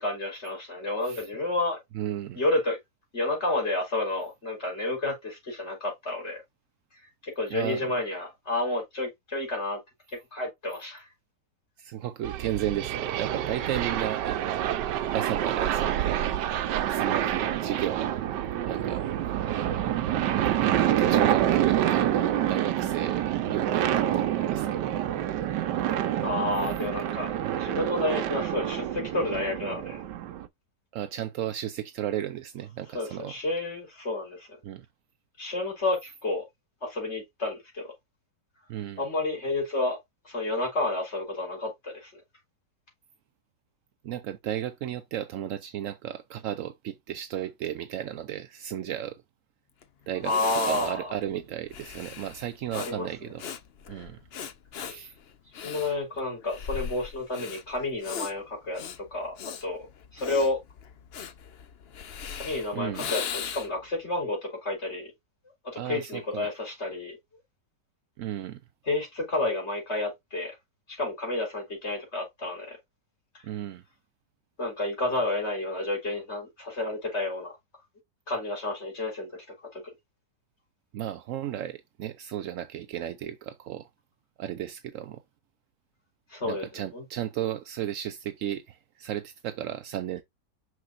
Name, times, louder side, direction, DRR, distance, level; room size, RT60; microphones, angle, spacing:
voice 1, 0.0-1.8 2.3-2.8 3.1-6.4 6.9-9.8 10.1-11.1 26.2-27.3 27.6-30.0 32.9-34.5 35.4-36.4 36.8-37.9 39.0-40.0 40.2-42.1 50.2-51.2 52.7-53.3 55.0-55.1 55.6-58.8 59.1-59.3 59.6-59.9 60.1-60.6 62.4-65.1 65.8-67.2 68.9-70.6 70.9-72.8 73.3-73.4 74.6-77.5 78.3-79.3 79.6-79.8 86.3-87.0, left 2 dB, 40° left, 4.2 m, -30 dB
voice 2, 1.9-2.4 7.5-7.9 11.8-14.7 15.1-18.1 18.6-19.0 20.7-25.0 27.5-27.6 30.9-33.4 34.6-34.9 38.7-39.0 44.0-49.2 50.1-50.3 50.6-53.4 53.9-54.2 54.8-55.1 62.7-63.1 65.7-66.5 68.2-68.6 73.4-73.8 80.9-83.9 84.4-85.2 86.4-90.2, right 11 dB, 70° right, 0.8 m, -34 dB
sound 1, 12.2-30.5, right 11 dB, 90° right, 1.3 m, -27 dB
Breathing, 49.8-49.9 50.2-63.9, left 7 dB, 55° left, 0.7 m, -39 dB
6.2 x 5.9 x 2.5 m
omnidirectional pair, 1.8 m